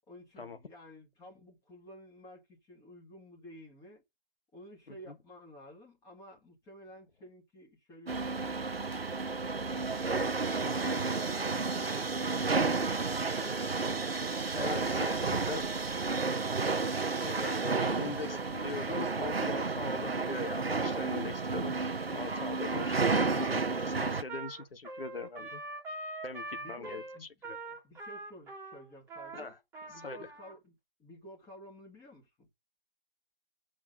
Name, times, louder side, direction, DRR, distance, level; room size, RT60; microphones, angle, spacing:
voice 1, 0.1-4.0 4.5-8.7 9.4-12.9 17.1-18.6 26.5-27.3 27.8-29.6 29.9-30.7 31.0-32.5, equal, 10° left, 2.0 m, -52 dB
sound 1, 8.1-24.2, right 4 dB, 85° right, 1.0 m, -31 dB
voice 2, 14.5-15.6 17.2-21.8 22.1-25.6 26.2-27.8 29.3-29.6 29.9-30.3, left 4 dB, 70° left, 1.5 m, -41 dB
Trumpet, 22.3-30.5, right 2 dB, 10° right, 1.8 m, -44 dB
6.4 x 6.3 x 5.1 m
figure-of-eight pair, 135°, 30 cm